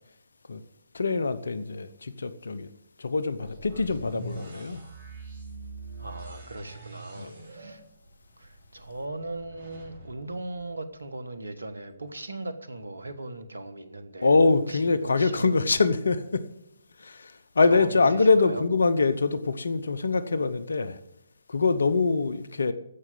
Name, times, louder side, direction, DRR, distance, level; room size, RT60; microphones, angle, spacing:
voice 1, 0.9-2.7 3.0-4.8 7.2-7.4 14.2-16.4 17.0-21.0 21.5-22.7, left 4 dB, 75° left, 0.9 m, -24 dB
sound 1, 3.4-11.3, right 2 dB, 50° right, 5.1 m, -44 dB
voice 2, 6.0-7.8 8.4-14.4 14.7-15.7 17.6-18.6, right 2 dB, 80° right, 1.4 m, -39 dB
15.0 x 6.1 x 7.6 m
figure-of-eight pair, 135°, 0 cm